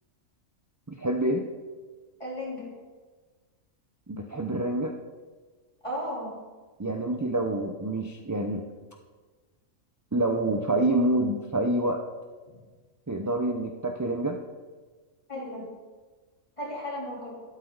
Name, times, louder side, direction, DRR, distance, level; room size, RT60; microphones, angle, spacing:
voice 1, 0.9-1.4 4.1-4.9 6.8-8.6 10.1-12.0 13.1-14.4, right 1 dB, 20° right, 3 dB, 0.4 m, -27 dB
voice 2, 2.2-2.7 5.8-6.3 15.3-15.7 16.6-17.3, equal, 25° left, -5 dB, 3.7 m, -34 dB
12.5 x 12.5 x 4.0 m, 1.4 s
omnidirectional pair, 1.3 m